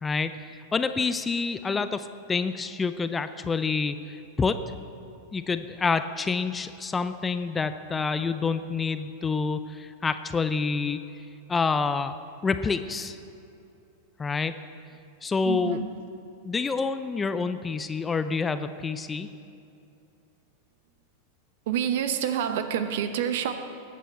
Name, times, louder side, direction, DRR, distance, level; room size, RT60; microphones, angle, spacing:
voice 1, 0.0-4.6 5.3-11.0 11.5-12.2 12.4-13.2 14.2-14.6 15.2-15.8 16.4-19.3, left 4 dB, 15° left, 11 dB, 0.5 m, -28 dB
voice 2, 15.4-15.9 21.7-23.5, right 9 dB, 55° right, 9 dB, 0.8 m, -27 dB
19.5 x 8.3 x 4.4 m, 2.7 s
figure-of-eight pair, 90°, 0 cm